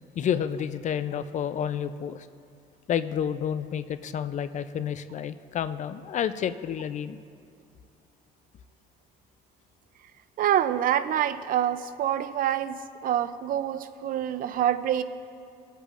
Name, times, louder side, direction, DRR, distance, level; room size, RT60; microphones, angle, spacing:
voice 1, 0.2-2.3 2.9-7.2, left 8 dB, 45° left, 12 dB, 0.4 m, -30 dB
voice 2, 10.4-15.0, right 10 dB, 55° right, 13 dB, 0.5 m, -26 dB
20.0 x 8.2 x 2.5 m, 2.4 s
cardioid pair, 110°, 17 cm